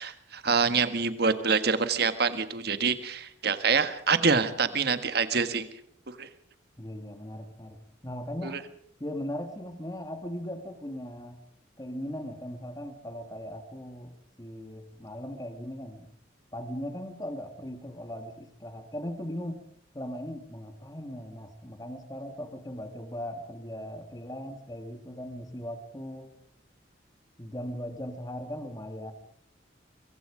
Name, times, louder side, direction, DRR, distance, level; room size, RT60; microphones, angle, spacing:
voice 1, 0.0-5.7 6.2-6.3 8.4-8.6, right 5 dB, 55° right, 10 dB, 1.6 m, -26 dB
voice 2, 6.8-8.6 9.0-11.4 11.8-16.1 16.5-19.6 19.9-26.3 27.4-29.1, equal, 20° left, 7 dB, 1.8 m, -38 dB
24.0 x 23.5 x 5.0 m, 0.64 s
head